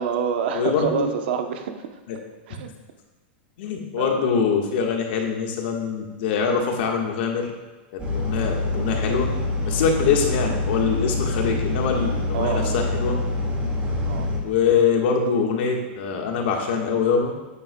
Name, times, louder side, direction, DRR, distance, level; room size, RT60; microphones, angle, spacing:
voice 1, 0.0-1.9 2.5-2.7 4.0-4.2 12.3-12.9 14.1-14.3, right 7 dB, 65° right, 6 dB, 0.9 m, -27 dB
voice 2, 0.5-1.0 2.1-2.2 3.6-7.5 8.1-9.3 9.6-13.1 14.4-17.3, left 6 dB, 65° left, 1 dB, 1.6 m, -23 dB
sound 1, 8.0-14.4, left 2 dB, 20° right, 2.0 m, -25 dB
10.0 x 8.5 x 2.3 m, 1.2 s
supercardioid pair, 140°, 6 cm